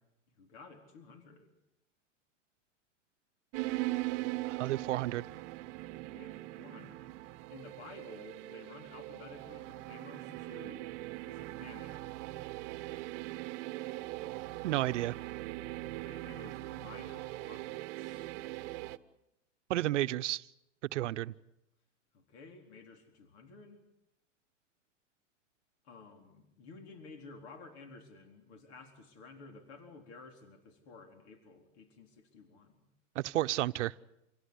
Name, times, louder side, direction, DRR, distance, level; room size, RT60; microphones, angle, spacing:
voice 1, 0.4-1.5 5.9-7.1 7.5-11.0 11.2-12.2 15.9-18.4 22.1-23.8 25.8-32.9, left 3 dB, 60° left, 4.3 m, -53 dB
sound 1, 3.5-19.0, right 18 dB, 45° right, 1.1 m, -40 dB
voice 2, 4.5-5.3 14.6-15.2 19.7-20.4 20.9-21.3 33.1-33.9, right 15 dB, 70° right, 0.9 m, -31 dB
27.0 x 17.5 x 9.8 m
hypercardioid pair, 130°, 37 cm